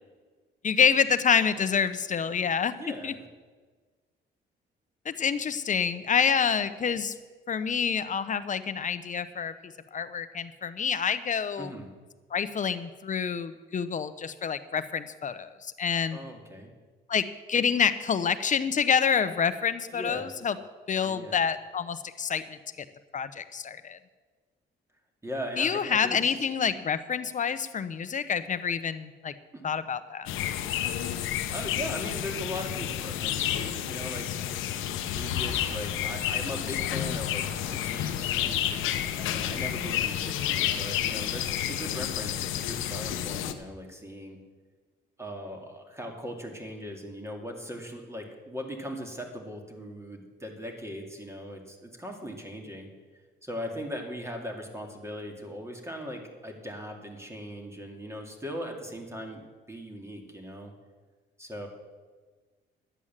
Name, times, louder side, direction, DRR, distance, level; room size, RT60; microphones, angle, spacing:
voice 1, 0.6-2.7 3.0-3.1 5.0-7.1 7.5-11.7 12.3-16.2 17.1-20.6 20.9-22.6 23.1-24.0 25.6-29.3 29.6-30.3, left 7 dB, 40° left, 12 dB, 0.8 m, -27 dB
voice 2, 2.7-3.2 11.6-11.9 16.1-16.7 19.9-20.3 21.0-21.4 25.2-26.5 29.5-29.6 31.5-34.3 35.1-44.4 45.2-52.9 53.4-60.7 61.4-61.7, equal, 15° right, 3 dB, 2.3 m, -39 dB
sound 1, 30.3-43.5, left 10 dB, 90° left, 0.8 m, -30 dB
11.0 x 8.2 x 7.4 m, 1.4 s
cardioid pair, 90°, 20 cm